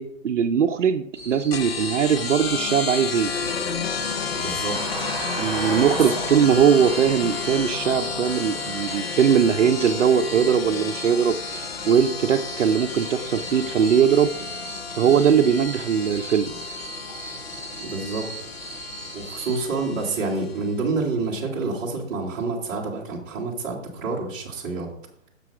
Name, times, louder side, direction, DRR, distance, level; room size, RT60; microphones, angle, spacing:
voice 1, 0.0-3.3 5.4-14.3 15.0-16.5, right 7 dB, 65° right, 9 dB, 0.6 m, -20 dB
sound 1, 1.1-19.6, right 2 dB, 10° left, 1.7 m, -39 dB
sound 2, 1.5-20.7, left 5 dB, 50° left, 0.7 m, -32 dB
voice 2, 4.4-4.8 17.8-18.3 19.1-24.9, right 3 dB, 15° right, -4 dB, 1.2 m, -28 dB
sound 3, 4.7-9.7, right 3 dB, 30° right, 2.3 m, -35 dB
6.8 x 6.0 x 4.8 m, 0.69 s
hypercardioid pair, 165°, 40 cm